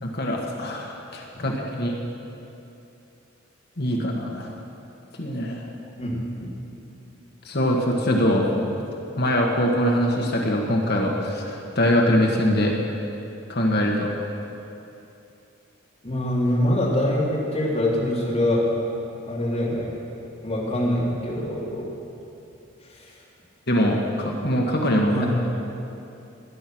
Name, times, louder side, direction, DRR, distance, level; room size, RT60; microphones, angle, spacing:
voice 1, 0.0-1.9 3.8-4.5 5.2-5.6 7.4-8.8 9.2-12.8 13.5-14.1 23.7-25.2, equal, 50° left, 0 dB, 1.5 m, -23 dB
voice 2, 6.0-6.5 16.0-18.6 19.2-19.9 20.4-21.9 22.9-23.1 25.1-25.3, left 1 dB, 30° left, -6 dB, 3.3 m, -24 dB
19.5 x 10.5 x 6.2 m, 2.8 s
head